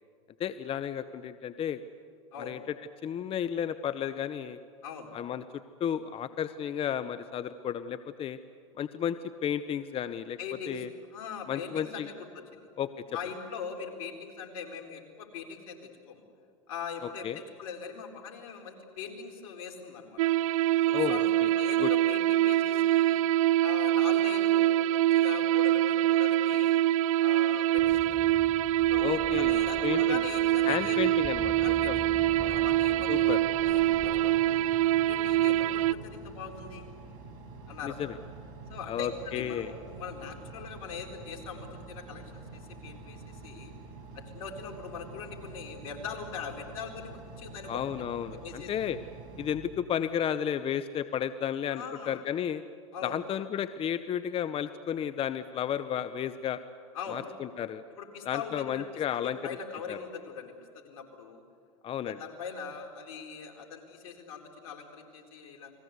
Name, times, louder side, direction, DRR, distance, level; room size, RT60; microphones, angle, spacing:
voice 1, 0.4-1.8 2.4-2.6 3.0-4.6 5.1-5.4 5.8-8.4 8.8-9.2 9.4-10.4 10.7-10.9 11.5-12.1 12.8-12.9 17.2-17.4 20.9-21.5 21.8-21.9 29.0-30.2 30.6-32.0 33.1-33.4 37.8-38.1 38.9-39.7 47.7-49.0 49.4-52.6 53.0-56.6 57.1-57.8 58.3-59.4 59.9-60.0 61.8-62.2, left 9 dB, 30° left, 13 dB, 0.9 m, -32 dB
voice 2, 10.4-10.9 11.1-12.7 13.1-15.8 16.1-16.2 16.7-20.2 20.9-21.3 21.6-23.2 23.6-26.8 27.2-28.3 28.9-31.0 31.6-32.0 32.4-34.7 35.1-36.9 37.7-37.9 38.7-42.2 42.5-43.7 44.3-47.8 48.3-48.7 51.7-52.2 52.9-53.2 56.9-57.2 57.9-58.8 59.1-61.4 62.0-65.7, left 6 dB, 75° left, 3 dB, 4.2 m, -41 dB
sound 1, 20.2-35.9, right 13 dB, 80° right, 0.6 m, -25 dB
sound 2, 27.8-34.5, right 2 dB, 15° right, 4.6 m, -45 dB
Engine, 30.7-49.6, right 3 dB, 55° right, 5.4 m, -47 dB
30.0 x 21.0 x 8.2 m, 2.2 s
hypercardioid pair, 105°, 18 cm